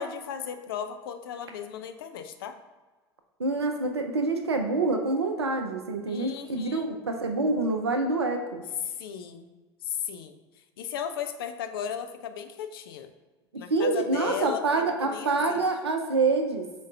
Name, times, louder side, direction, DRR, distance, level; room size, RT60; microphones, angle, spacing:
voice 1, 0.0-2.6 6.1-6.9 8.9-9.5 9.9-10.4 10.8-13.1 13.6-15.6, left 8 dB, 65° left, 8 dB, 0.4 m, -36 dB
voice 2, 3.4-8.6 13.7-16.7, right 3 dB, 80° right, 4 dB, 0.4 m, -26 dB
5.1 x 3.7 x 2.5 m, 1.3 s
figure-of-eight pair, 75°, 13 cm